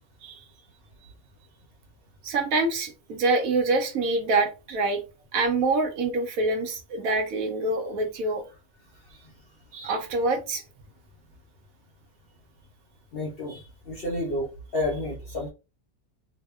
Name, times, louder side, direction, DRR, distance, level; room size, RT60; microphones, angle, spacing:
voice 1, 2.2-5.0 5.3-8.4 9.7-10.6, right 3 dB, 75° right, 1.0 m, -25 dB
voice 2, 13.1-15.5, left 1 dB, 55° left, 0.7 m, -30 dB
2.8 x 2.1 x 2.2 m
omnidirectional pair, 1.5 m